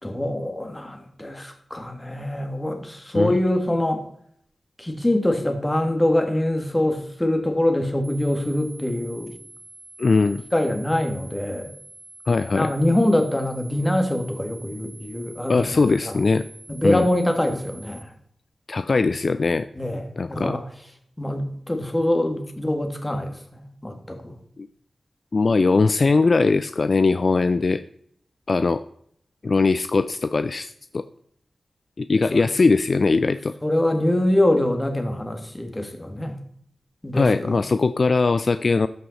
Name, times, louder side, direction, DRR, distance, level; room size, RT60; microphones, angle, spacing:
voice 1, 0.0-4.0 4.8-9.3 10.5-11.7 12.5-16.2 16.7-18.1 19.7-20.0 20.3-20.6 21.2-24.4 32.3-32.4 33.6-36.4 37.0-37.6, left 1 dB, 15° left, 5 dB, 1.8 m, -24 dB
sound 1, 8.0-18.0, right 2 dB, 30° right, 2.3 m, -46 dB
voice 2, 10.0-10.4 12.3-12.7 15.5-16.4 16.8-17.0 18.7-19.7 20.2-20.6 24.6-24.7 25.3-27.8 28.5-28.8 29.4-31.0 32.0-33.5 37.1-38.9, left 3 dB, 55° left, 12 dB, 0.3 m, -20 dB
13.0 x 5.6 x 4.1 m, 0.67 s
cardioid pair, 65°, 0 cm